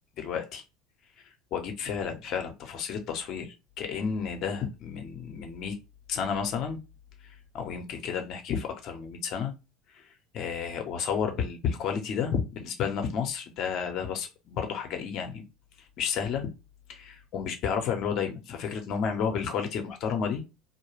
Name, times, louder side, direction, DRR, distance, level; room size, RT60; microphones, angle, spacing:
voice 1, 0.2-0.6 1.5-5.8 6.1-6.8 7.5-9.5 10.3-15.4 16.0-16.5 16.9-20.4, left 7 dB, 55° left, 0.7 m, -31 dB
2.2 x 2.0 x 3.1 m
hypercardioid pair, 75°, 0 cm